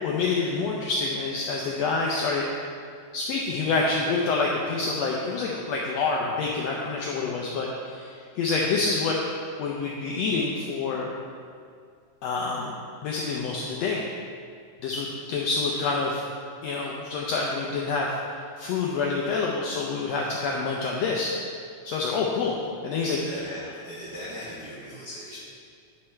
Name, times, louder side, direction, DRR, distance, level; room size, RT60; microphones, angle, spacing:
voice 1, 0.0-2.5 3.1-9.2 9.6-11.1 12.2-12.7 13.0-14.0 14.8-16.2 16.6-21.3 21.8-22.6 22.8-23.7, left 4 dB, 85° left, -2 dB, 1.5 m, -27 dB
voice 2, 23.2-25.4, equal, 85° right, -7 dB, 0.9 m, -38 dB
9.6 x 4.3 x 4.5 m, 2.2 s
omnidirectional pair, 3.7 m